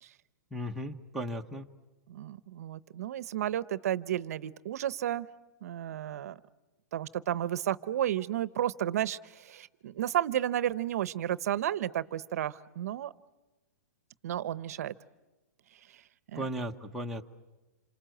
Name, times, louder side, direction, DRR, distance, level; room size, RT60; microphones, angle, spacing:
voice 1, 0.5-1.7 16.3-17.2, equal, ahead, 0 dB, 1.0 m, -36 dB
voice 2, 2.1-5.3 5.6-6.4 6.9-13.1 14.2-14.9 16.3-16.5, right 11 dB, 60° right, 17 dB, 0.8 m, -32 dB
27.5 x 25.5 x 7.9 m, 1.1 s
hypercardioid pair, 160°, 9 cm